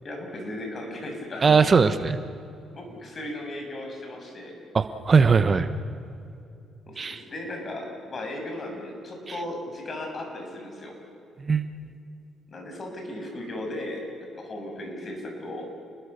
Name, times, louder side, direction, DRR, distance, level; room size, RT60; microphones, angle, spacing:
voice 1, 0.0-1.8 2.7-4.6 6.9-11.0 12.5-14.1 14.4-15.7, left 1 dB, 40° left, 2 dB, 6.9 m, -36 dB
voice 2, 1.4-2.2 4.7-5.7 7.0-7.2 11.4-11.7, right 5 dB, 35° right, 11 dB, 1.1 m, -20 dB
29.5 x 21.0 x 6.9 m, 2.6 s
cardioid pair, 90°, 0 cm